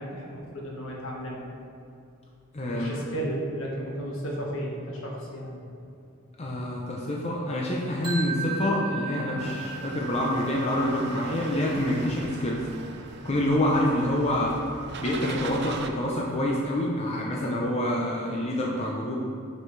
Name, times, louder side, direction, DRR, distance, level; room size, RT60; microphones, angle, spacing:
voice 1, 0.0-1.5 2.7-5.7 6.4-6.5 15.4-15.6, right 1 dB, 70° left, -2 dB, 1.4 m, -34 dB
voice 2, 2.5-3.0 6.4-12.6 13.2-14.6 15.0-19.2, left 1 dB, 30° left, -2 dB, 0.6 m, -27 dB
sound 1, 8.0-14.0, right 4 dB, 25° right, 1.8 m, -38 dB
sound 2, 9.4-15.9, right 4 dB, 50° right, 0.5 m, -40 dB
9.7 x 5.2 x 3.3 m, 2.6 s
head